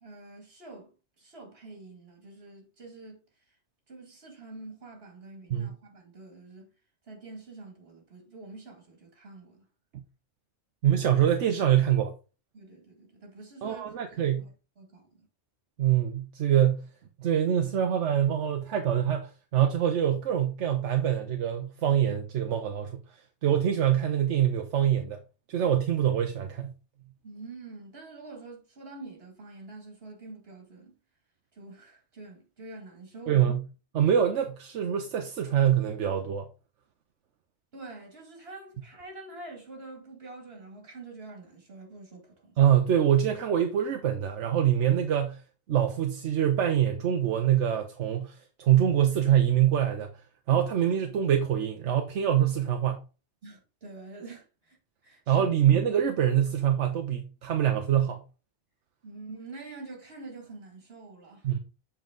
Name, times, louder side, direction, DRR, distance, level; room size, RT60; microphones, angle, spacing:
voice 1, 0.0-3.3 3.9-6.7 7.1-9.7 12.5-13.8 14.4-14.5 14.8-15.3 27.2-31.0 31.5-33.5 37.7-42.6 53.4-54.8 55.0-55.5 59.0-61.5, right 3 dB, 60° right, 2.5 m, -46 dB
voice 2, 10.8-12.1 13.6-14.5 15.8-16.9 17.2-23.0 23.4-25.2 25.5-26.7 33.3-33.6 33.9-36.5 42.6-45.4 45.7-50.1 50.5-53.0 55.3-58.2 61.4-61.6, right 10 dB, 85° right, 1.1 m, -25 dB
7.3 x 4.4 x 3.7 m
omnidirectional pair, 1.2 m